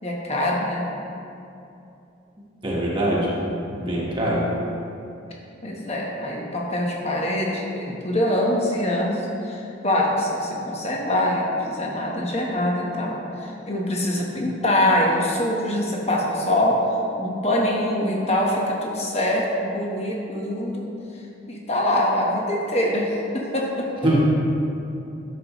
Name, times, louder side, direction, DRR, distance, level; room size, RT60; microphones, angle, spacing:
voice 1, 0.0-0.9 5.6-16.8 17.2-20.9 21.5-23.9, left 1 dB, 35° left, -2 dB, 1.1 m, -24 dB
voice 2, 2.6-3.4 3.7-4.5 24.0-24.2, right 1 dB, 25° right, -5 dB, 1.3 m, -23 dB
10.5 x 6.9 x 3.0 m, 2.8 s
head